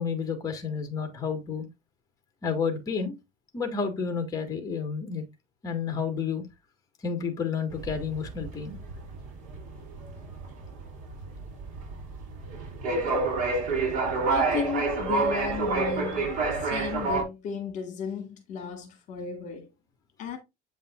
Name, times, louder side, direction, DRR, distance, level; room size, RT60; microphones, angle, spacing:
voice 1, 0.0-1.7 2.4-3.2 3.5-5.2 5.6-6.5 7.0-8.8, left 6 dB, 20° left, 2.0 m, -30 dB
sound 1, 7.7-17.2, right 3 dB, 55° right, 3.5 m, -28 dB
voice 2, 14.3-16.3 16.6-19.7 20.2-20.4, left 6 dB, 50° left, 1.7 m, -34 dB
8.0 x 5.4 x 2.5 m
cardioid pair, 150°, 16 cm